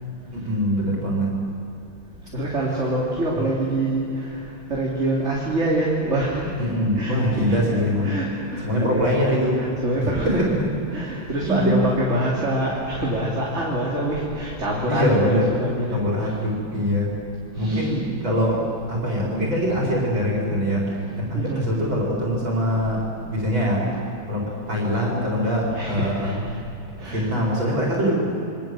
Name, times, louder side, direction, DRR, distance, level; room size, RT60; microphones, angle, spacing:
voice 1, 0.3-1.3 6.6-8.2 8.6-9.7 10.3-10.5 11.4-11.8 14.9-15.5 15.9-17.1 17.6-18.6 18.9-23.9 24.3-26.3 27.0-28.1, equal, 65° right, -2 dB, 5.3 m, -23 dB
voice 2, 2.3-6.7 6.9-9.1 9.6-10.5 10.9-16.4 17.6-17.9 21.3-21.7 25.7-26.4 27.0-27.3, right 1 dB, 30° right, -4 dB, 3.5 m, -26 dB
28.5 x 23.5 x 7.8 m, 2.8 s
omnidirectional pair, 2.3 m